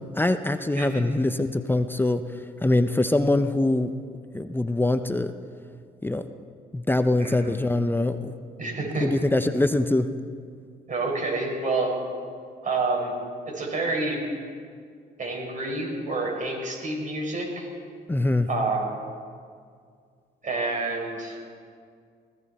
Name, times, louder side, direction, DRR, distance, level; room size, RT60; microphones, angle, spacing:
voice 1, 0.2-2.2 2.6-3.9 4.3-5.3 6.0-6.2 6.7-8.3 9.0-10.1 18.1-18.5, left 2 dB, 10° left, 9 dB, 0.7 m, -23 dB
voice 2, 7.2-7.6 8.6-9.1 10.9-11.9 12.6-13.1 13.5-14.2 15.2-17.7 18.5-18.9 20.4-21.4, right 3 dB, 45° right, 0 dB, 5.1 m, -28 dB
20.0 x 15.5 x 4.2 m, 2.2 s
cardioid pair, 80°, 18 cm